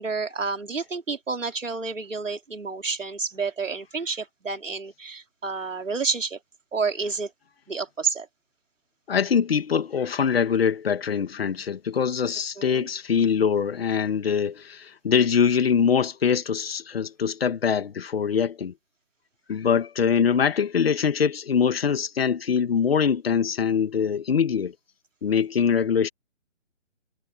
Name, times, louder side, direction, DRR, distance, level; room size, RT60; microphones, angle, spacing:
voice 1, 0.0-6.4 6.7-7.3 7.7-8.3 12.6-12.9, right 4 dB, 80° right, 3.4 m, -29 dB
voice 2, 9.1-18.7 19.5-24.7 25.2-26.1, left 7 dB, 50° left, 1.8 m, -23 dB
figure-of-eight pair, 150°, 38 cm